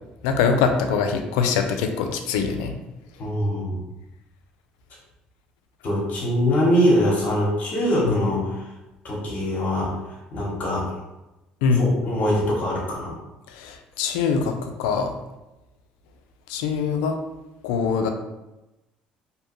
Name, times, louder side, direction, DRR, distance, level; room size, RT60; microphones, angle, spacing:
voice 1, 0.2-2.7 8.0-8.3 11.6-11.9 13.5-15.1 16.5-17.2 17.6-18.1, left 5 dB, 90° left, 5 dB, 0.3 m, -23 dB
voice 2, 3.2-3.8 5.8-8.7 9.0-10.9 11.7-13.1, equal, 55° left, -5 dB, 1.0 m, -23 dB
2.7 x 2.1 x 2.9 m, 0.98 s
supercardioid pair, 80°, 3 cm